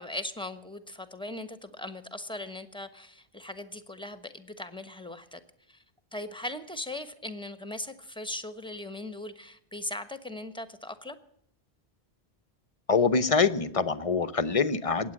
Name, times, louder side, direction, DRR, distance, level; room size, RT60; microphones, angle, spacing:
voice 1, 0.0-5.4 5.7-5.8 6.1-11.2, left 1 dB, 5° left, 11 dB, 1.1 m, -39 dB
voice 2, 12.9-15.1, left 4 dB, 35° left, 13 dB, 0.7 m, -25 dB
21.5 x 9.2 x 7.4 m, 0.70 s
omnidirectional pair, 1.1 m